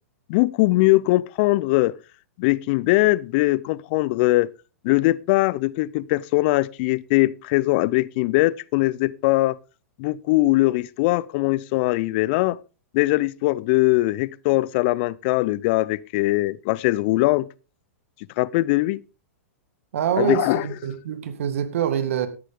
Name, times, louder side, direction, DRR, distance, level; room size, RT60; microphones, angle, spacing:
voice 1, 0.3-2.0 2.4-4.5 4.8-9.6 10.0-12.6 12.9-17.5 18.4-19.0 20.2-20.7, left 20 dB, 45° left, 0.5 m, -21 dB
voice 2, 19.9-22.3, right 9 dB, 65° right, 2.0 m, -25 dB
13.5 x 11.0 x 3.6 m
hypercardioid pair, 105°, 8 cm